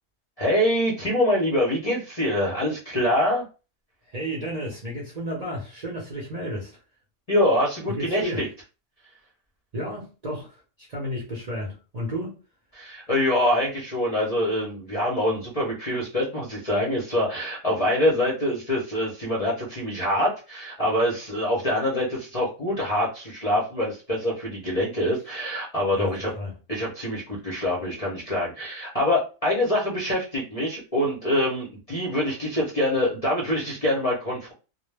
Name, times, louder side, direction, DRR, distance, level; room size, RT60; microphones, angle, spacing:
voice 1, 0.4-3.4 7.3-8.5 12.8-26.3 26.7-34.5, left 1 dB, 40° left, 0.5 m, -25 dB
voice 2, 4.0-6.8 7.9-8.4 9.7-12.4 25.9-26.5, equal, 40° right, 0.6 m, -32 dB
2.2 x 2.1 x 3.2 m
omnidirectional pair, 1.4 m